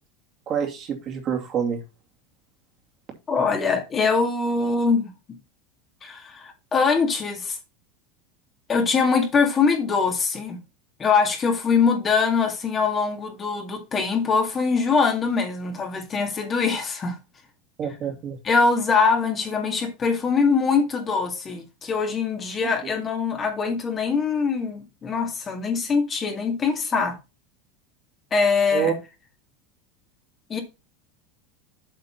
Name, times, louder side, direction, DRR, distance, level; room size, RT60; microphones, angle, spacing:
voice 1, 0.5-1.8 17.8-18.4 28.7-28.9, right 8 dB, 40° right, 2.5 m, -26 dB
voice 2, 3.3-5.1 6.0-7.6 8.7-10.6 11.0-17.2 18.4-27.2 28.3-28.9 30.5-30.6, left 5 dB, 25° left, 2.1 m, -23 dB
7.9 x 4.2 x 5.9 m
supercardioid pair, 120°, 0 cm